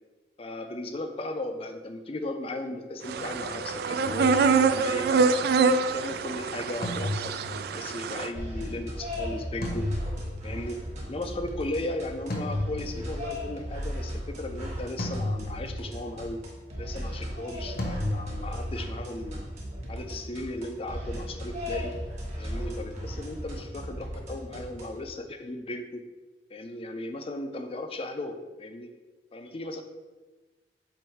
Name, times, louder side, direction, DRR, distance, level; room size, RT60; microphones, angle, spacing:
voice 1, 0.4-5.4 5.9-9.9 10.4-16.4 16.8-19.4 19.9-21.9 22.4-26.0 26.5-28.9 29.3-29.8, left 1 dB, 30° left, 7 dB, 0.5 m, -36 dB
sound 1, 3.1-8.3, right 4 dB, 60° right, 0.3 m, -25 dB
sound 2, 4.1-5.1 6.8-8.0 9.6-10.8 12.3-13.5 15.0-16.1 17.8-18.7, left 1 dB, 55° left, 1.0 m, -34 dB
sound 3, 8.3-25.0, equal, 40° right, 1.4 m, -36 dB
7.8 x 2.6 x 4.6 m, 1.2 s
head